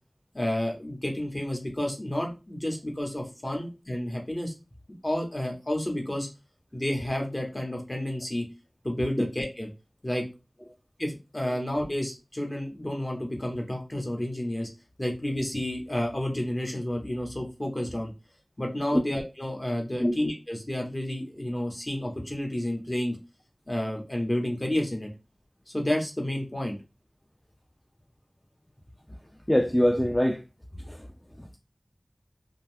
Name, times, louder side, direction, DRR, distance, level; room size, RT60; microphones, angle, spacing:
voice 1, 0.3-4.5 5.0-6.3 6.7-8.4 8.8-9.7 10.0-10.2 11.0-14.7 15.0-18.1 18.6-23.2 23.7-25.1 25.7-26.8, left 1 dB, 30° left, 1 dB, 0.9 m, -30 dB
voice 2, 29.5-30.4 30.9-31.1, equal, 15° left, 3 dB, 0.3 m, -23 dB
2.6 x 2.3 x 3.3 m, 0.29 s
wide cardioid pair, 55°, 0 cm